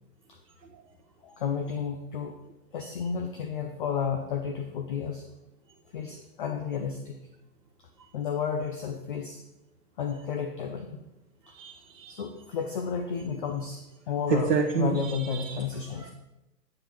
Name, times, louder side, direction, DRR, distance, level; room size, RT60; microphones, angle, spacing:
voice 1, 1.2-2.4 2.7-5.2 5.9-7.2 7.8-7.9 8.1-9.4 10.0-11.0 11.5-11.6 12.1-13.8 14.1-16.1, left 6 dB, 35° left, 5 dB, 0.5 m, -32 dB
voice 2, 11.6-12.2 14.3-15.6, right 5 dB, 90° right, 1 dB, 1.0 m, -28 dB
8.5 x 7.5 x 3.1 m, 0.97 s
hypercardioid pair, 140°, 49 cm